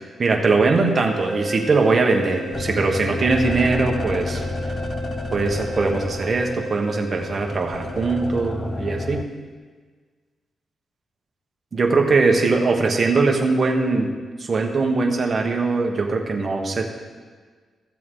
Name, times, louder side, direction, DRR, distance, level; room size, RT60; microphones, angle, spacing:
voice 1, 0.2-4.4 5.3-9.2 11.7-14.1 14.4-16.9, right 3 dB, 40° right, 2 dB, 1.3 m, -21 dB
sound 1, 0.9-8.5, right 2 dB, 60° right, 1.8 m, -34 dB
sound 2, 2.5-9.2, left 3 dB, 35° left, 0.4 m, -30 dB
14.0 x 7.5 x 3.8 m, 1.5 s
cardioid pair, 100°, 0 cm